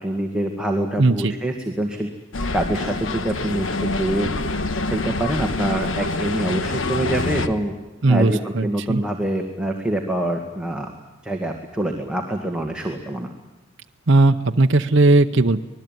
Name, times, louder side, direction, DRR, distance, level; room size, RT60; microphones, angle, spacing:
voice 1, 0.0-2.1 2.5-4.3 4.9-7.7 8.1-10.9 11.2-13.3, right 1 dB, 5° right, 1 dB, 2.1 m, -25 dB
voice 2, 1.0-1.3 8.0-9.0 14.1-15.6, right 2 dB, 60° right, 5 dB, 0.8 m, -17 dB
sound 1, 2.3-7.5, left 2 dB, 70° left, 1.4 m, -26 dB
26.0 x 19.5 x 9.3 m, 1.1 s
head